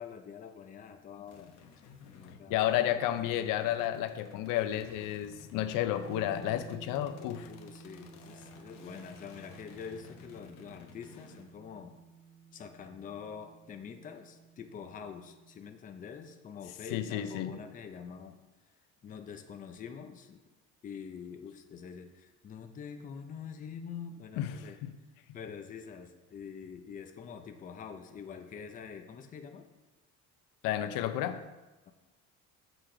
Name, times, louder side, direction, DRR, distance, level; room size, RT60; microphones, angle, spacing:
voice 1, 0.0-1.5 2.1-2.6 7.5-12.0 12.5-18.4 19.0-20.4 20.8-24.8 25.3-29.7, left 6 dB, 25° left, 6 dB, 0.6 m, -45 dB
sound 1, 1.3-11.4, left 6 dB, 55° left, 1.1 m, -54 dB
voice 2, 2.5-7.5 16.9-17.5 24.4-24.5 24.8-24.9 30.6-31.4, left 12 dB, 75° left, 10 dB, 0.6 m, -31 dB
sound 2, 6.1-15.8, right 5 dB, 55° right, 1.9 m, -54 dB
7.8 x 6.5 x 3.8 m, 1.1 s
cardioid pair, 160°, 33 cm